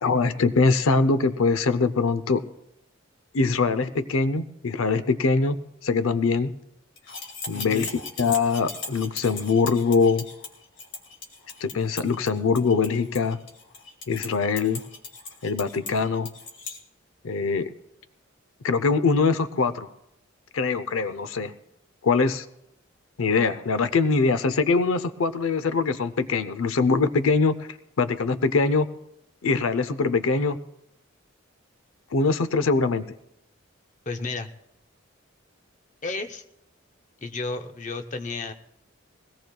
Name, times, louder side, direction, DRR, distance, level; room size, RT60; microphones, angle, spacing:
voice 1, 0.0-2.4 3.3-5.6 5.8-6.5 7.5-10.3 11.6-13.4 14.1-14.8 15.4-16.3 17.2-17.7 18.6-19.9 20.5-21.5 22.0-22.5 23.2-27.7 28.0-28.9 29.4-30.6 32.1-33.1, left 4 dB, 85° left, 12 dB, 0.6 m, -23 dB
sound 1, 7.0-16.8, left 4 dB, 65° left, 2.1 m, -38 dB
voice 2, 7.5-7.9 34.1-34.5 36.0-36.4 37.2-38.5, left 3 dB, 35° left, 7 dB, 0.7 m, -32 dB
21.5 x 17.0 x 2.3 m, 0.80 s
head